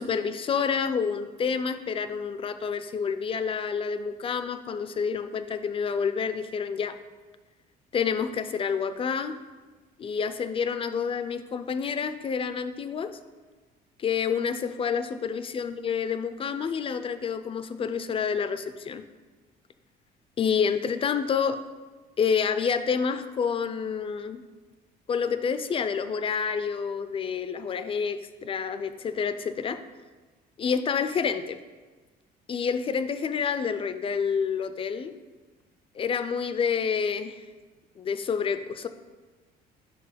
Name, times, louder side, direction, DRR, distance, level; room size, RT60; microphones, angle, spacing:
voice 1, 0.0-7.0 7.9-9.3 10.0-13.2 14.0-19.0 20.4-21.6 22.2-24.4 25.1-29.8 30.6-31.6 32.5-35.1 36.0-37.5 38.0-38.9, left 6 dB, 35° left, 10 dB, 0.3 m, -28 dB
5.2 x 4.6 x 5.0 m, 1.3 s
cardioid pair, 110°, 17 cm